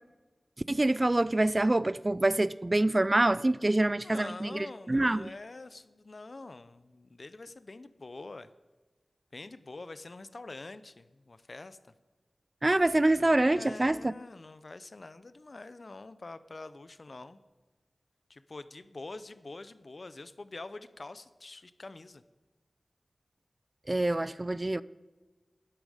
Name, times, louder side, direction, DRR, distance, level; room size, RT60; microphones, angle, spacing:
voice 1, 0.7-5.3 12.6-14.1 23.9-24.8, right 2 dB, 35° right, 0.3 m, -26 dB
voice 2, 4.0-8.5 9.3-11.9 13.5-17.4 18.3-22.2 24.3-24.4, left 3 dB, 60° left, 0.6 m, -45 dB
12.5 x 10.0 x 5.0 m
cardioid pair, 45°, 0 cm